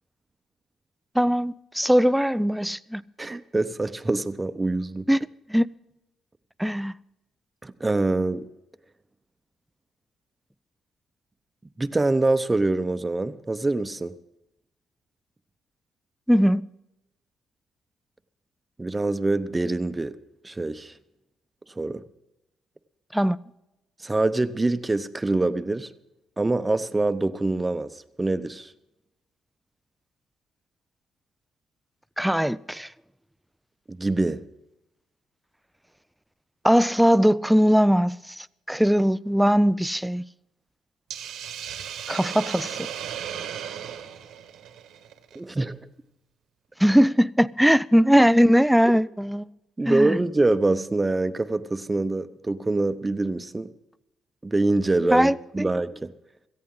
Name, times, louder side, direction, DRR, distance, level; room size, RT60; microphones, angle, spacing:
voice 1, 1.2-3.0 5.1-5.2 5.5-5.7 6.6-6.9 16.3-16.6 23.1-23.4 32.2-32.9 36.6-40.2 42.1-42.8 46.8-49.5 49.9-50.2 55.1-55.7, equal, 5° right, 0.4 m, -20 dB
voice 2, 3.2-5.1 7.6-8.5 11.8-14.2 18.8-20.9 21.8-22.0 24.0-25.9 26.4-28.7 33.9-34.4 45.3-45.8 49.8-53.7 54.4-56.1, right 2 dB, 20° right, 0.8 m, -25 dB
Hiss, 41.1-45.4, right 9 dB, 85° right, 1.5 m, -36 dB
17.5 x 14.0 x 3.9 m
cardioid pair, 90°, 0 cm